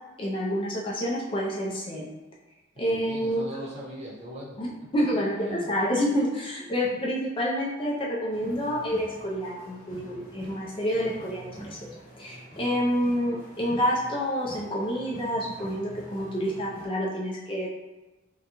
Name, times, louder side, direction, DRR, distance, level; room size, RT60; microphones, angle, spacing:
voice 1, 0.2-2.1 2.8-3.5 4.6-11.9 12.2-17.7, equal, 25° left, -4 dB, 0.4 m, -28 dB
voice 2, 2.9-4.6 5.4-5.7 6.8-7.0, equal, 35° right, -6 dB, 0.8 m, -40 dB
sound 1, 8.3-16.9, equal, 40° left, 0.8 m, -45 dB
3.7 x 2.2 x 2.9 m, 1.2 s
head